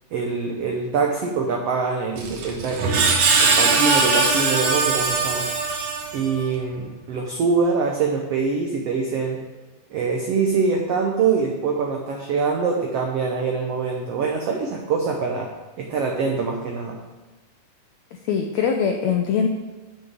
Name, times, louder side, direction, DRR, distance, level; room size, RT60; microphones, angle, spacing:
voice 1, 0.1-3.1 3.4-5.5 6.1-9.4 9.9-15.5 15.8-17.0, right 5 dB, 90° right, 1 dB, 1.3 m, -24 dB
Screech, 2.2-6.5, right 4 dB, 70° right, 2.5 m, -21 dB
voice 2, 18.1-19.5, left 6 dB, 85° left, 3 dB, 1.5 m, -22 dB
6.8 x 6.5 x 7.4 m, 1.2 s
omnidirectional pair, 4.0 m